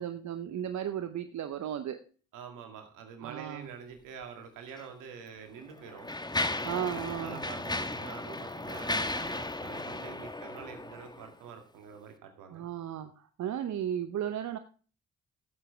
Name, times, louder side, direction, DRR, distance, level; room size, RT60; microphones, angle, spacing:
voice 1, 0.0-2.0 3.2-3.7 6.6-7.5 12.5-14.6, right 10 dB, 65° right, 10 dB, 0.8 m, -35 dB
voice 2, 2.3-6.1 6.7-12.7, right 7 dB, 80° right, 5 dB, 2.3 m, -46 dB
Mechanisms, 4.7-4.8 5.6-11.3, left 2 dB, 15° left, 1.2 m, -35 dB
14.0 x 7.7 x 3.3 m, 0.38 s
hypercardioid pair, 45°, 31 cm